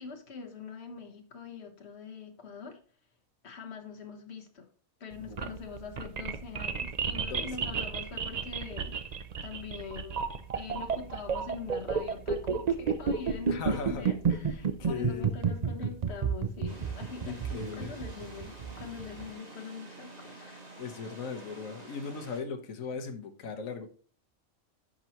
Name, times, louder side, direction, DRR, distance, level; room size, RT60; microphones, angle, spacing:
voice 1, 0.0-2.8 3.4-4.7 5.0-10.2 10.5-20.6, left 5 dB, 50° left, 4 dB, 1.6 m, -43 dB
sound 1, 5.1-19.2, right 6 dB, 45° right, 0.5 m, -31 dB
voice 2, 5.2-5.5 7.3-7.7 13.5-14.1 14.9-15.3 17.3-17.9 20.8-23.9, left 5 dB, 65° left, 5 dB, 1.5 m, -38 dB
sound 2, 16.7-22.4, right 2 dB, 30° right, 1.9 m, -49 dB
10.0 x 6.5 x 3.0 m, 0.40 s
omnidirectional pair, 1.5 m